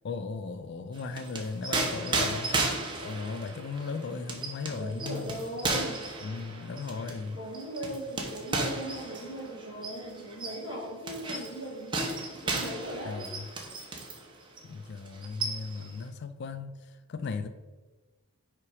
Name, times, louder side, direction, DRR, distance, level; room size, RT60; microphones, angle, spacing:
voice 1, 0.0-2.7 3.0-5.4 6.2-7.4 13.0-13.5 14.6-17.5, left 4 dB, 50° left, 10 dB, 0.4 m, -37 dB
sound 1, 0.9-14.2 14.6-14.7 15.1-15.9, right 3 dB, 20° right, 1.0 m, -34 dB
voice 2, 4.7-6.1 7.3-12.0 12.4-13.3, right 1 dB, 65° left, -7 dB, 1.9 m, -39 dB
5.6 x 5.0 x 4.8 m, 1.2 s
head